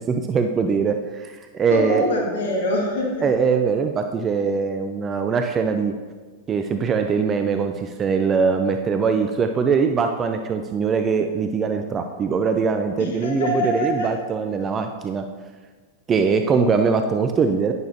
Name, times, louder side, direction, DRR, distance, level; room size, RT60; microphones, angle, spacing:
voice 1, 0.0-2.1 3.2-5.9 6.5-15.3 16.1-17.7, right 5 dB, 25° right, 6 dB, 0.5 m, -22 dB
voice 2, 1.7-3.2 13.0-14.1, left 1 dB, 60° left, -1 dB, 2.0 m, -24 dB
10.5 x 10.5 x 2.9 m, 1.5 s
figure-of-eight pair, 90°, 0 cm